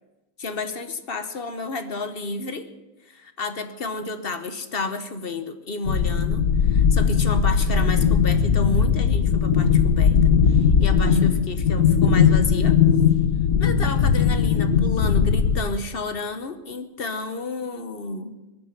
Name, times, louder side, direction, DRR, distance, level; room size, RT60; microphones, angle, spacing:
voice 1, 0.4-2.7 3.1-12.8 13.6-18.3, left 3 dB, 45° left, 9 dB, 1.1 m, -31 dB
sound 1, 5.8-15.6, left 7 dB, 85° left, 1.5 m, -19 dB
22.0 x 9.5 x 5.9 m, 1.1 s
omnidirectional pair, 1.5 m